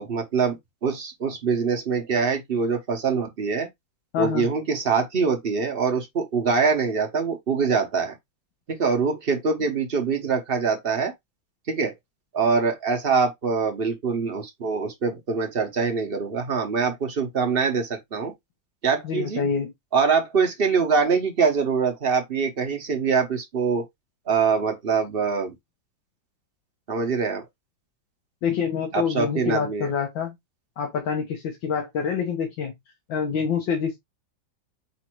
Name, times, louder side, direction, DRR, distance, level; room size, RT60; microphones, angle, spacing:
voice 1, 0.0-3.7 4.2-8.1 8.7-11.1 11.7-11.9 12.3-18.3 18.8-19.4 19.9-23.8 24.3-25.5 26.9-27.4 28.9-29.9, right 5 dB, 45° right, 0.8 m, -24 dB
voice 2, 4.1-4.5 19.0-19.7 28.4-30.3 30.8-32.7 33.1-34.0, left 6 dB, 80° left, 1.7 m, -26 dB
4.1 x 2.5 x 4.5 m
omnidirectional pair, 2.0 m